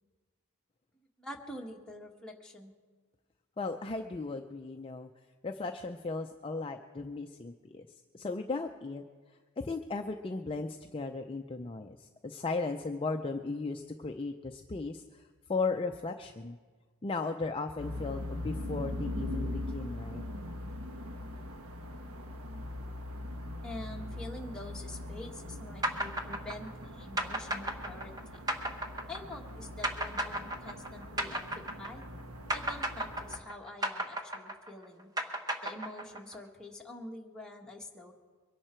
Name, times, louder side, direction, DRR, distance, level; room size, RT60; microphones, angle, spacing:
voice 1, 1.0-2.7 23.6-28.1 29.1-32.1 32.5-35.1 35.6-38.1, left 1 dB, 5° left, -1 dB, 1.5 m, -46 dB
voice 2, 3.6-5.1 5.4-9.0 9.6-16.6 17.0-20.3, left 3 dB, 25° left, 4 dB, 0.5 m, -36 dB
sound 1, 17.8-33.4, left 1 dB, 80° right, 1.2 m, -41 dB
sound 2, 25.8-32.2 32.5-36.3, right 1 dB, 20° right, 1.0 m, -34 dB
23.0 x 11.5 x 4.5 m, 1.5 s
head